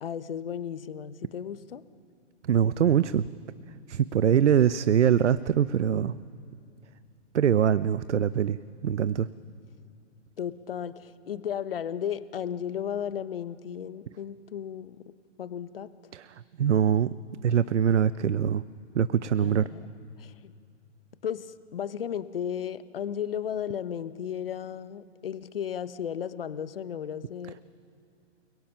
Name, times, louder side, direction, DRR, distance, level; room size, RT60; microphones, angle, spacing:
voice 1, 0.0-1.8 10.4-15.1 15.4-15.9 19.4-19.9 20.2-20.5 21.2-27.6, left 9 dB, 50° left, 14 dB, 1.0 m, -34 dB
voice 2, 2.5-3.3 3.9-6.1 7.3-8.6 8.8-9.3 16.1-16.3 16.6-17.1 17.4-18.6 18.9-19.7, right 9 dB, 75° right, 16 dB, 0.7 m, -23 dB
29.5 x 22.5 x 5.8 m, 2.6 s
hypercardioid pair, 170°, 36 cm